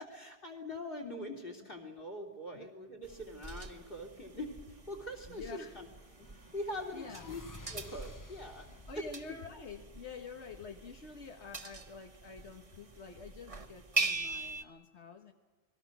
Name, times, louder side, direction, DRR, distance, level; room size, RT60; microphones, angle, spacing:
voice 1, 0.0-5.9 6.2-7.4 7.7-9.0, left 1 dB, 55° left, 5 dB, 3.5 m, -43 dB
sound 1, 3.0-14.6, right 3 dB, 30° right, 1.2 m, -42 dB
voice 2, 5.3-5.8 6.9-7.3 8.9-15.3, left 4 dB, 90° left, 3 dB, 1.7 m, -48 dB
sound 2, 5.6-10.5, left 2 dB, 20° left, 0.8 m, -54 dB
29.0 x 21.0 x 6.1 m, 1.3 s
omnidirectional pair, 1.1 m